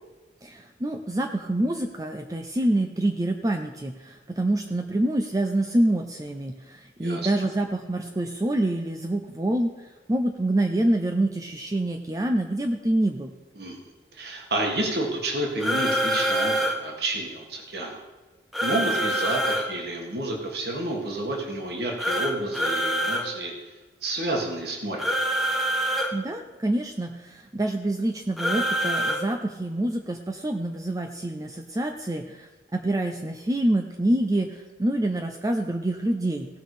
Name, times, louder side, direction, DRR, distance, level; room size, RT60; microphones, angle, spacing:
voice 1, 0.4-13.3 26.1-36.5, right 1 dB, 20° right, 4 dB, 0.5 m, -26 dB
voice 2, 14.1-18.0 18.6-23.5 24.0-25.1, right 1 dB, 60° right, 1 dB, 1.9 m, -30 dB
sound 1, 15.6-16.8 18.5-19.6 22.0-23.2 25.0-26.1 28.4-29.2, right 1 dB, ahead, 1.1 m, -25 dB
16.5 x 6.2 x 5.0 m, 1.2 s
head